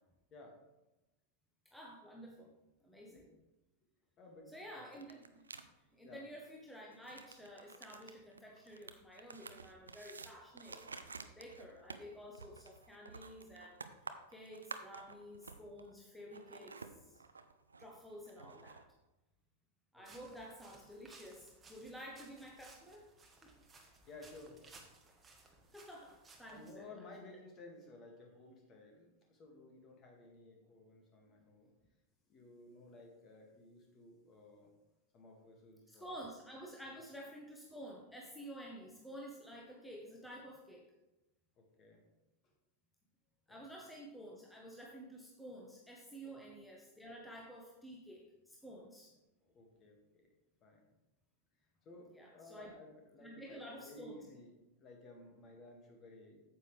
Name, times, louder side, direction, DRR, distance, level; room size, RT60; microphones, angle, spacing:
voice 1, 1.6-2.5 2.8-3.2 4.5-5.4 5.9-10.8 11.4-13.8 14.3-17.2 17.8-18.8 19.9-23.0 23.4-23.5 25.7-26.9 35.9-40.9 43.5-49.1 52.1-52.7 53.2-54.2, equal, 5° left, -2 dB, 1.2 m, -51 dB
voice 2, 4.2-4.9 6.0-6.2 19.9-20.4 23.3-23.4 23.7-24.6 25.2-25.3 26.5-31.7 32.3-34.7 35.1-36.2 41.6-42.0 42.4-42.5 43.5-43.7 46.2-46.4 49.4-50.3 50.6-50.8 51.9-56.4, left 2 dB, 30° left, 1 dB, 2.0 m, -56 dB
sound 1, 4.9-5.6 6.9-15.9 16.2-18.8, right 4 dB, 75° right, 0.5 m, -51 dB
sound 2, 20.0-26.7, right 3 dB, 15° right, 1.4 m, -61 dB
9.1 x 7.6 x 3.3 m, 1.0 s
figure-of-eight pair, 90°, 0 cm